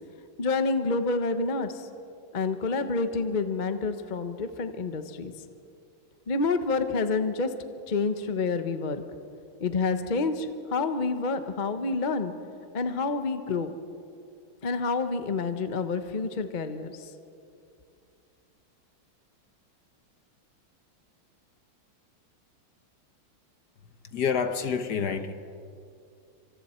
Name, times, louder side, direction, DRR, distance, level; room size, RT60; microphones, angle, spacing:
voice 1, 0.4-1.9 2.3-5.3 6.3-7.5 7.9-9.0 9.6-12.3 12.7-13.7 14.6-17.1, left 4 dB, 35° left, 8 dB, 0.7 m, -28 dB
voice 2, 24.0-25.3, left 6 dB, 60° left, 9 dB, 1.3 m, -28 dB
26.5 x 26.5 x 4.4 m, 2.5 s
omnidirectional pair, 2.4 m